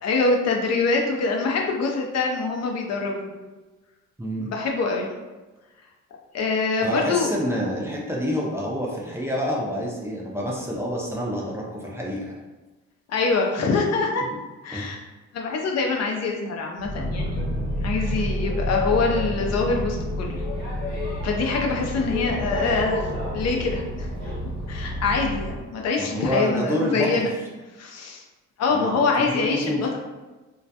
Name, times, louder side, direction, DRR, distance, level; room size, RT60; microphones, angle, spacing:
voice 1, 0.0-3.3 4.4-5.1 6.3-7.3 13.1-14.2 14.6-15.0 15.3-17.5 17.8-20.4 21.2-24.1 24.7-27.3 27.8-28.2 28.6-30.0, left 4 dB, 60° left, 1 dB, 0.5 m, -24 dB
voice 2, 4.2-4.5 6.8-12.3 14.7-14.9 26.0-27.2 28.7-29.9, equal, 10° right, -4 dB, 0.4 m, -28 dB
Boat Water vehicle, 16.8-25.6, left 1 dB, 25° left, 1.1 m, -28 dB
2.2 x 2.1 x 2.7 m, 1.2 s
cardioid pair, 90°, 30 cm